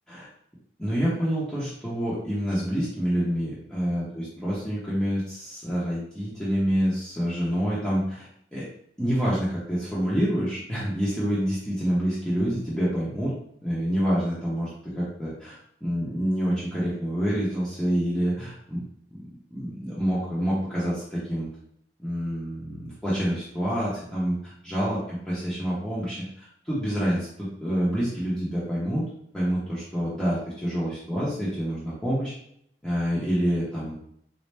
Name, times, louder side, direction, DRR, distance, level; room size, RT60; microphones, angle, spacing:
voice 1, 0.8-8.7 9.0-13.3 13.6-18.8 19.1-19.2 19.5-21.5 22.0-24.4 24.6-29.0 29.3-32.3 32.8-33.9, equal, 5° left, -9 dB, 0.7 m, -27 dB
4.1 x 2.0 x 3.3 m, 0.71 s
head